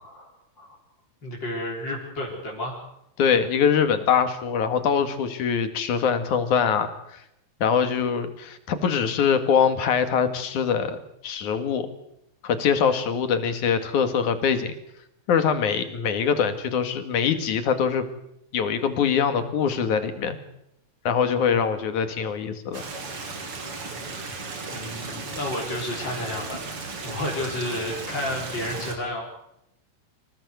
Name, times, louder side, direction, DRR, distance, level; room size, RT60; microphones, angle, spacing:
voice 1, 1.2-2.8 24.7-26.6 27.0-29.3, left 1 dB, 35° left, -4 dB, 4.4 m, -31 dB
voice 2, 3.2-6.9 7.6-11.9 12.4-14.8 15.3-18.0 18.5-20.4 21.0-22.8, left 7 dB, 75° left, 9 dB, 3.4 m, -23 dB
Stream, 22.7-29.0, right 3 dB, 45° right, 3.7 m, -35 dB
26.0 x 17.0 x 8.0 m, 0.82 s
omnidirectional pair, 3.5 m